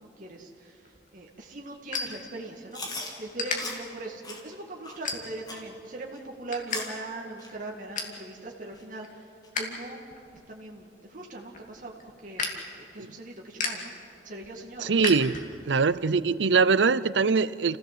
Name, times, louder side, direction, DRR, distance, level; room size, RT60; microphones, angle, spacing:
voice 1, 0.0-2.8 3.2-10.0 10.5-11.9 12.2-12.5 12.7-13.9 14.2-15.1, right 2 dB, 45° right, -1 dB, 2.0 m, -40 dB
sound 1, 0.8-2.8 3.3-3.6 4.1-4.4 5.0-5.6 6.0-6.8 7.1-7.2 7.6-8.2 8.7-9.8 10.1-15.8, left 4 dB, 45° left, 2.6 m, -35 dB
Chewing mastication, 2.7-3.1 3.6-3.8 4.2-4.4 4.8-5.0 5.5-5.6 6.1-6.2 6.7-7.0 7.4-7.5 8.1-8.2 8.7-8.8 9.4-9.5, left 2 dB, 25° left, 2.8 m, -38 dB
voice 2, 14.8-15.3 15.7-17.8, right 5 dB, 85° right, 17 dB, 0.6 m, -22 dB
29.0 x 16.0 x 7.7 m, 2.9 s
head